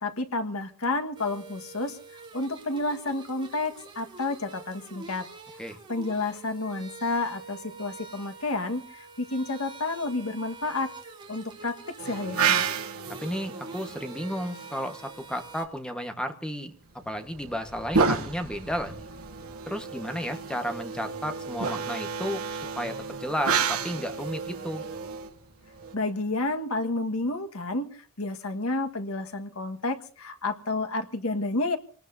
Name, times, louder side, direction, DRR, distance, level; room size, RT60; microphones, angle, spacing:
voice 1, 0.0-2.0 2.3-5.3 5.9-10.9 11.3-12.6 25.9-31.8, left 2 dB, 80° left, 8 dB, 1.6 m, -30 dB
sound 1, 1.2-15.7, right 3 dB, 20° right, 2.6 m, -46 dB
sound 2, 12.0-15.1 17.0-25.9, right 5 dB, 85° right, 1.5 m, -31 dB
voice 2, 13.2-16.7 17.0-19.0 19.7-24.8, equal, 5° left, 6 dB, 1.3 m, -33 dB
26.5 x 19.0 x 2.7 m, 0.42 s
head